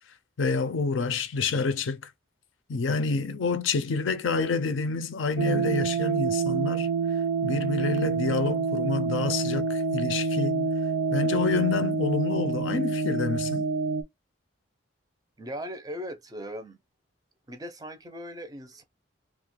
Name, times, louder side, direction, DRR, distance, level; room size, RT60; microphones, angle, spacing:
voice 1, 0.4-2.0 2.7-6.9 7.4-10.7 11.1-13.7, left 4 dB, 80° left, 0.5 m, -28 dB
sound 1, 5.4-14.0, right 5 dB, 90° right, 0.4 m, -27 dB
voice 2, 15.4-16.8 17.5-18.8, equal, 20° right, 0.4 m, -38 dB
2.4 x 2.1 x 3.0 m
head